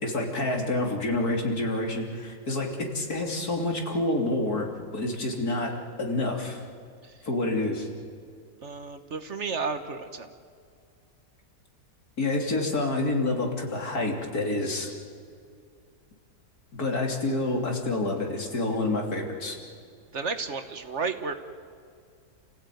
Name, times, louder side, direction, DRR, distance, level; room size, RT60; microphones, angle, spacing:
voice 1, 0.0-4.7 4.9-5.7 6.0-6.6 7.3-7.9 12.2-14.9 16.7-19.6, left 2 dB, 85° left, 1 dB, 3.6 m, -28 dB
voice 2, 8.6-10.3 20.1-21.3, right 4 dB, 50° right, 8 dB, 1.5 m, -32 dB
29.5 x 16.0 x 9.3 m, 2.3 s
omnidirectional pair, 1.6 m